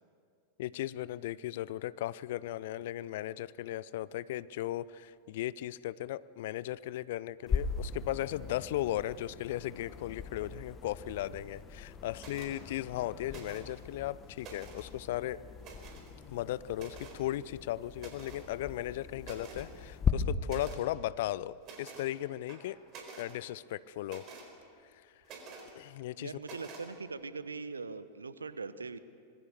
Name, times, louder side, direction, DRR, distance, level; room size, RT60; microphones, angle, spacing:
voice 1, 0.6-15.4 16.3-22.8 23.2-24.2 25.7-26.3, left 14 dB, 55° left, 19 dB, 0.5 m, -36 dB
sound 1, 7.5-20.1, left 6 dB, 25° left, 1.7 m, -40 dB
sound 2, 12.2-12.5 13.3-13.8 14.2-14.9 15.6-16.1 16.7-17.2 18.0-18.5 18.9-19.0 19.2-19.7 20.5-20.8 21.6-22.1 22.5-23.3 24.0-24.5 25.2-25.7 26.4-26.9, right 4 dB, 35° right, 4.3 m, -49 dB
voice 2, 26.2-29.0, right 4 dB, 75° right, 14 dB, 1.0 m, -41 dB
25.5 x 21.0 x 6.7 m, 2.3 s
figure-of-eight pair, 90°, 0 cm